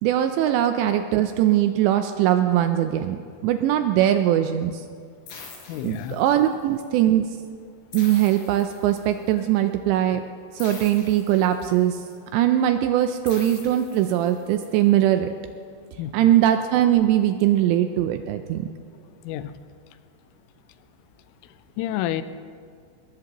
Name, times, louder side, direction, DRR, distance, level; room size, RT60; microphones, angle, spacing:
voice 1, 0.0-4.8 5.8-7.3 7.9-10.2 10.5-12.0 12.3-15.3 16.1-18.7, right 12 dB, 85° right, 8 dB, 2.6 m, -21 dB
sound 1, 5.3-6.6 7.9-9.3 10.6-12.0 13.3-14.6, left 5 dB, 70° left, 5.3 m, -44 dB
voice 2, 5.7-6.2 12.8-12.9 16.0-16.3 19.2-19.5 21.4-22.2, left 12 dB, 90° left, 12 dB, 3.2 m, -30 dB
21.5 x 19.5 x 3.0 m, 2.1 s
omnidirectional pair, 5.5 m